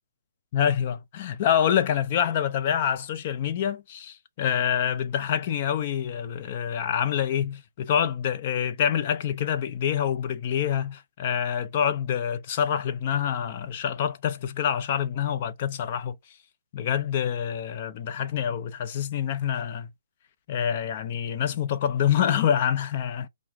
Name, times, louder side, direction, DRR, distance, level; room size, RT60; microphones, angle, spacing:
voice 1, 0.5-16.2 16.7-19.9 20.5-23.3, left 9 dB, 30° left, 0.5 m, -26 dB
5.7 x 2.0 x 3.6 m
hypercardioid pair, 165°, 0 cm